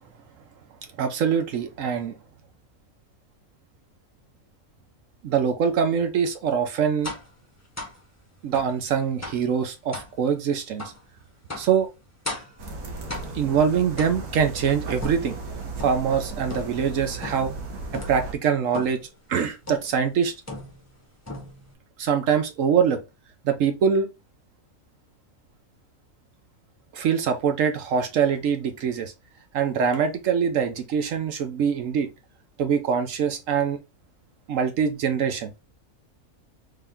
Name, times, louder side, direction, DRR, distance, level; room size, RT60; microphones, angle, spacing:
voice 1, 1.0-2.1 5.2-7.1 8.4-10.8 11.6-11.9 13.3-15.4 15.8-17.5 18.1-19.0 19.3-20.3 22.0-23.0 23.4-24.1 26.9-29.1 29.5-32.1 32.6-33.8 34.5-35.5, right 7 dB, 65° right, 1.0 m, -23 dB
sound 1, 7.0-7.3 7.8-8.0 8.5-8.8 9.2-9.5 9.9-10.1 10.8-11.0 11.5-11.8 12.2-12.6 13.1-13.5 14.0-14.5 15.0-16.1 16.5-16.9 17.2-17.6 17.9-18.2 18.7-19.1 19.7-20.0 20.5-21.0 21.3-21.7, left 2 dB, 15° left, 0.7 m, -37 dB
sound 2, 12.6-18.3, right 3 dB, 85° right, 1.3 m, -35 dB
3.4 x 2.8 x 3.5 m
omnidirectional pair, 1.5 m